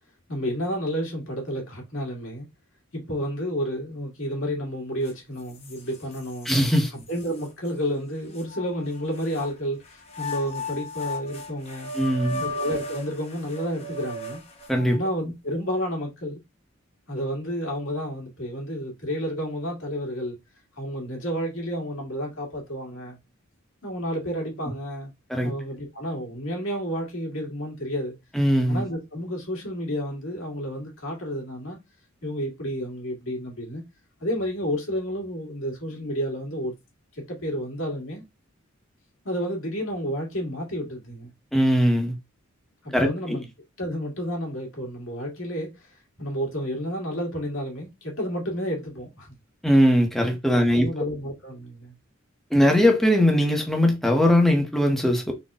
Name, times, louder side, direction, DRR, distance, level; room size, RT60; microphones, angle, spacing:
voice 1, 0.3-2.5 2.9-6.5 6.9-11.9 12.4-14.4 14.9-16.4 17.1-20.4 20.8-23.2 23.8-25.1 25.4-28.1 28.7-31.8 32.2-33.8 34.2-36.7 37.1-38.2 39.2-41.3 42.8-43.5 43.8-49.3 50.5-51.9, equal, 70° left, 1.9 m, -31 dB
sound 1, 5.1-5.2 5.6-6.6 7.2-7.3 8.4-9.5 10.1-15.0, left 1 dB, 30° left, 0.8 m, -35 dB
voice 2, 6.4-6.9 11.9-12.4 14.7-15.0 25.3-25.5 28.3-28.8 41.5-42.1 42.9-43.4 49.6-50.9 52.5-55.3, equal, ahead, 0.8 m, -20 dB
4.0 x 2.2 x 3.6 m
head